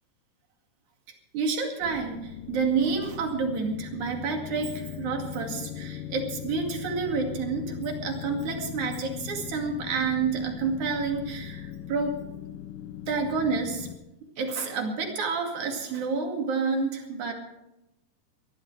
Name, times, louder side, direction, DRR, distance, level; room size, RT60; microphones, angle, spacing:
voice 1, 1.3-12.2 13.1-13.9 14.4-17.3, right 5 dB, 60° right, 3 dB, 3.5 m, -29 dB
sound 1, 1.8-14.0, left 10 dB, 80° left, 2.4 m, -39 dB
23.0 x 14.5 x 3.3 m, 0.91 s
omnidirectional pair, 3.9 m